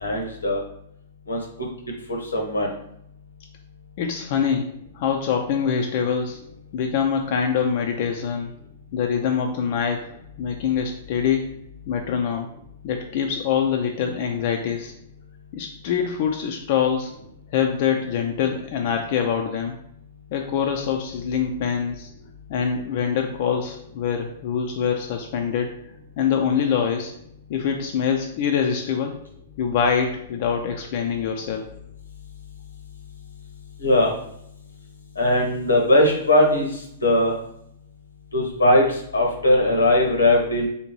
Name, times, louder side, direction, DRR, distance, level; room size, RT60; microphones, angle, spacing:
voice 1, 0.0-0.6 1.3-1.7 2.1-2.7 33.8-34.1 35.2-36.7 37.0-37.3 38.3-40.7, left 1 dB, 85° left, 2 dB, 0.8 m, -19 dB
voice 2, 4.0-6.4 6.7-8.5 8.9-11.5 11.9-12.5 12.8-14.9 15.5-17.1 17.5-19.8 20.3-22.1 22.5-25.7 26.2-27.1 27.5-29.2 29.6-31.7, left 7 dB, 50° left, 3 dB, 0.3 m, -24 dB
3.5 x 2.7 x 2.9 m, 0.74 s
hypercardioid pair, 110°, 0 cm